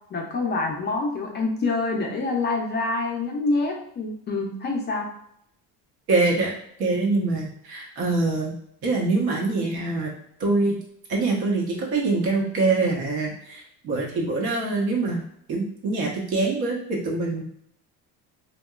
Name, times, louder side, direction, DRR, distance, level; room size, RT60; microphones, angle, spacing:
voice 1, 0.1-5.1, left 3 dB, 30° left, 0 dB, 0.3 m, -26 dB
voice 2, 6.1-6.5 6.8-8.5 8.8-10.1 10.4-10.7 11.1-15.2 15.5-17.4, right 3 dB, 75° right, -1 dB, 0.9 m, -24 dB
2.8 x 2.2 x 2.3 m, 0.71 s
cardioid pair, 155°, 37 cm